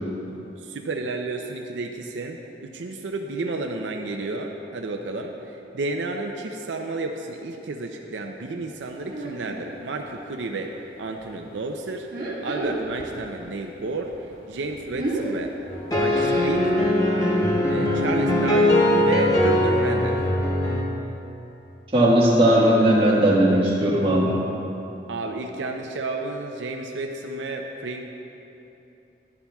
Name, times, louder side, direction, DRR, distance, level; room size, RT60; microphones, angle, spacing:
voice 1, 0.6-12.1 12.4-14.1 14.5-15.5 15.9-16.7 17.7-20.2 25.1-28.1, right 3 dB, 85° right, 3 dB, 0.5 m, -31 dB
sound 1, 9.1-9.5 9.9-10.6 11.0-11.3 12.0-13.2 13.5-17.5 17.9-18.2 18.5-18.6 18.8-18.9 19.4-19.5, right 2 dB, 50° right, 1.7 m, -33 dB
sound 2, 15.7-20.8, left 1 dB, 20° left, 0.8 m, -21 dB
voice 2, 21.9-24.4, right 1 dB, 30° right, -6 dB, 1.5 m, -18 dB
11.5 x 11.0 x 2.3 m, 3.0 s
head